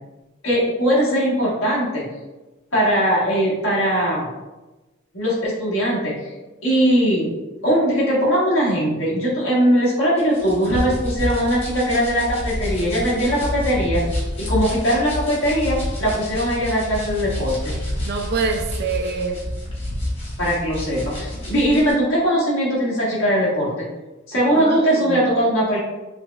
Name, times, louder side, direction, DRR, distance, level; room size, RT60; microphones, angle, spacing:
voice 1, 0.4-2.0 2.7-4.2 5.1-6.1 6.6-7.3 7.6-17.8 20.4-23.7 24.3-25.8, equal, 65° left, -6 dB, 1.3 m, -20 dB
sound 1, 10.2-21.9, left 1 dB, 30° left, 1.2 m, -28 dB
voice 2, 18.0-19.4 24.6-25.2, right 4 dB, 50° right, 5 dB, 0.4 m, -26 dB
5.8 x 2.1 x 2.3 m, 1.1 s
head